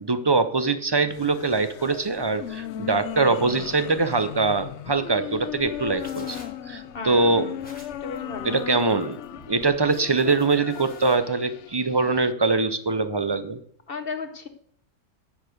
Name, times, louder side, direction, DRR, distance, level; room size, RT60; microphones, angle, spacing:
voice 1, 0.0-6.4 6.7-7.5 8.4-9.2 9.5-13.6, right 3 dB, 35° right, 11 dB, 0.4 m, -23 dB
sound 1, 1.1-12.3, left 12 dB, 65° left, 0.8 m, -37 dB
sound 2, 5.6-11.1, left 1 dB, 5° left, 3.3 m, -48 dB
voice 2, 6.9-7.5 7.9-8.6 13.9-14.5, left 4 dB, 45° left, 9 dB, 1.1 m, -35 dB
10.0 x 6.5 x 7.8 m, 0.63 s
omnidirectional pair, 1.5 m